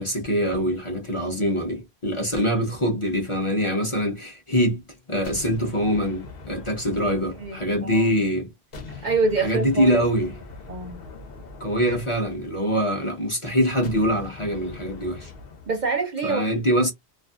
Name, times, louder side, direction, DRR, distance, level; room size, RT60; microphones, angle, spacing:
voice 1, 0.0-4.8 5.1-8.5 8.9-9.1 9.4-10.3 11.6-15.3 16.2-16.9, equal, 35° left, 0.7 m, -24 dB
sound 1, 5.2-8.3 8.7-13.0 13.8-15.9, left 4 dB, 60° left, 1.0 m, -42 dB
voice 2, 7.4-8.1 9.0-10.0 10.7-11.0 15.7-16.6, right 3 dB, 50° right, 0.6 m, -26 dB
2.5 x 2.5 x 2.4 m
omnidirectional pair, 1.1 m